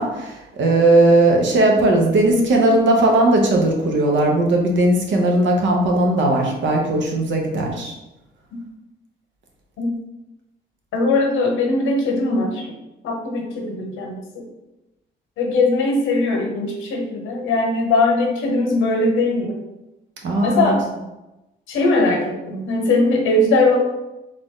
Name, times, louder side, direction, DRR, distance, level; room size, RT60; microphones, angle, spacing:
voice 1, 0.0-7.9 20.2-20.7, right 2 dB, 70° right, 0 dB, 1.0 m, -17 dB
voice 2, 10.9-12.7 13.0-14.4 15.4-19.6 20.4-20.8 21.7-23.8, left 2 dB, 85° left, 1 dB, 0.9 m, -20 dB
3.7 x 2.5 x 3.6 m, 0.98 s
cardioid pair, 90°, 20 cm